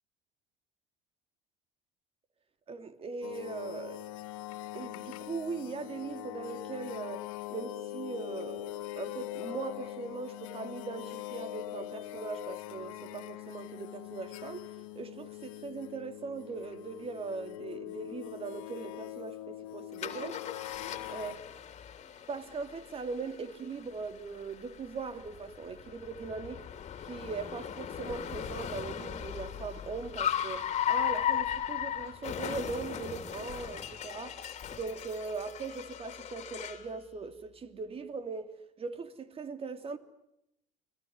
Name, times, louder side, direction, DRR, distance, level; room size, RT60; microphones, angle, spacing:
voice 1, 2.7-4.1 4.7-14.7 14.9-20.4 21.1-21.4 22.3-26.7 27.0-38.5 38.8-40.0, right 4 dB, 35° right, 2.9 m, -40 dB
sound 1, 3.2-21.4, left 15 dB, 75° left, 1.5 m, -42 dB
Car, 20.0-36.9, left 9 dB, 40° left, 3.3 m, -37 dB
29.5 x 21.0 x 9.7 m
hypercardioid pair, 75°, 18 cm